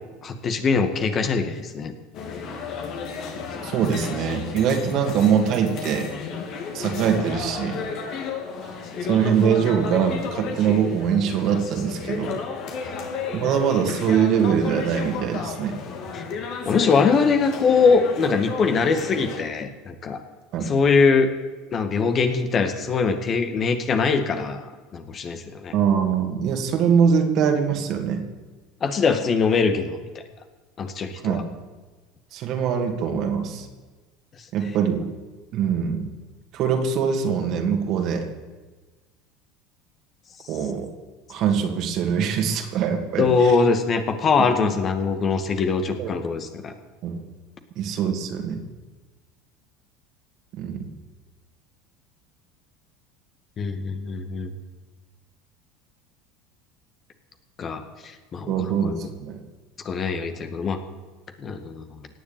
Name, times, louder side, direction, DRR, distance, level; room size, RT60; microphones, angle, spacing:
voice 1, 0.2-1.9 12.8-12.9 16.1-16.2 16.7-20.2 20.6-21.4 21.7-24.7 24.9-25.7 28.8-30.0 30.8-31.4 43.2-46.7 53.6-54.5 57.6-59.1 59.8-60.8 61.4-62.1, left 5 dB, 40° left, 7 dB, 1.9 m, -22 dB
sound 1, 2.1-19.4, left 5 dB, 55° left, 2.8 m, -33 dB
voice 2, 3.6-6.1 6.7-7.8 9.1-12.3 13.3-15.8 20.5-20.6 25.7-28.2 31.2-31.4 32.3-33.7 34.5-35.1 35.5-36.1 36.5-38.3 40.5-40.9 41.3-43.5 46.0-46.1 47.0-47.2 47.8-48.6 50.5-50.8 58.5-59.4, right 7 dB, 55° right, 4 dB, 2.6 m, -23 dB
18.0 x 7.4 x 9.1 m, 1.3 s
hypercardioid pair, 80°, 0 cm